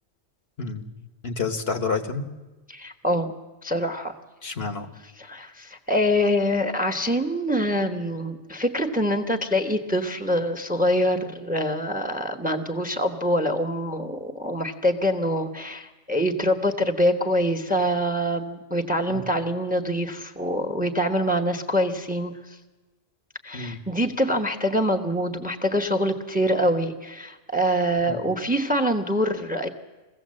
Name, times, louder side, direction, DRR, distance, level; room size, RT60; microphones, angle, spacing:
voice 1, 1.2-2.2 4.4-4.9 19.1-19.2 23.5-23.8 28.0-28.2, left 4 dB, 60° left, 7 dB, 1.4 m, -29 dB
voice 2, 2.7-3.3 3.6-4.2 5.2-22.3 23.4-29.7, equal, 10° right, 7 dB, 1.0 m, -25 dB
22.5 x 15.5 x 7.6 m, 1.2 s
omnidirectional pair, 1.2 m